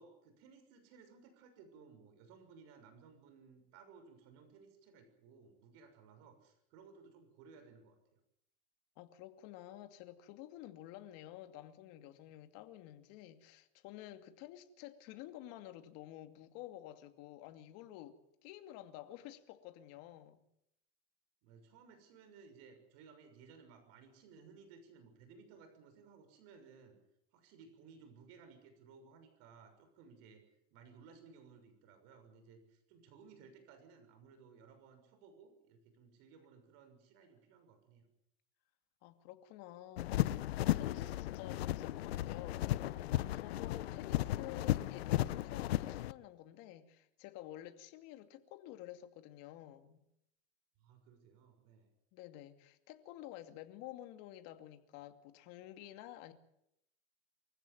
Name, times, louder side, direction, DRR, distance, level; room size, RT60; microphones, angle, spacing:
voice 1, 0.0-8.2 21.4-27.0 27.3-30.4 30.7-38.1 50.8-51.9, right 5 dB, 55° right, 6.5 m, -59 dB
voice 2, 9.0-20.4 39.0-50.0 52.1-56.3, left 13 dB, 55° left, 2.6 m, -51 dB
sound 1, 40.0-46.1, left 14 dB, 85° left, 1.0 m, -35 dB
24.5 x 15.5 x 9.4 m
supercardioid pair, 125°, 30 cm